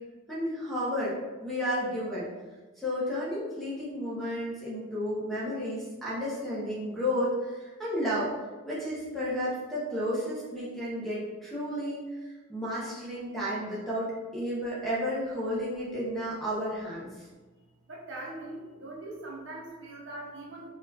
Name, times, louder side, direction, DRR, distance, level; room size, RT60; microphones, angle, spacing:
voice 1, 0.3-2.3 2.8-8.3 8.6-14.1 14.3-17.3, equal, ahead, -8 dB, 0.8 m, -32 dB
voice 2, 17.9-20.7, right 2 dB, 60° right, -2 dB, 0.6 m, -41 dB
3.9 x 2.3 x 2.8 m, 1.3 s
head